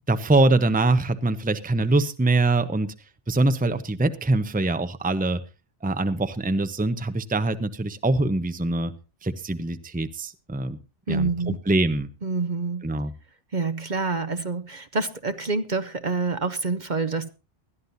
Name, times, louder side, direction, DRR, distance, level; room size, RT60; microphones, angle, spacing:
voice 1, 0.1-2.9 3.3-5.4 5.8-8.9 9.2-10.8 11.1-12.1 12.8-13.1, right 2 dB, 10° right, 11 dB, 0.8 m, -23 dB
voice 2, 11.1-11.6 12.2-12.9 13.5-17.3, right 4 dB, 45° right, 12 dB, 1.0 m, -27 dB
21.0 x 13.5 x 2.7 m, 0.31 s
omnidirectional pair, 1.2 m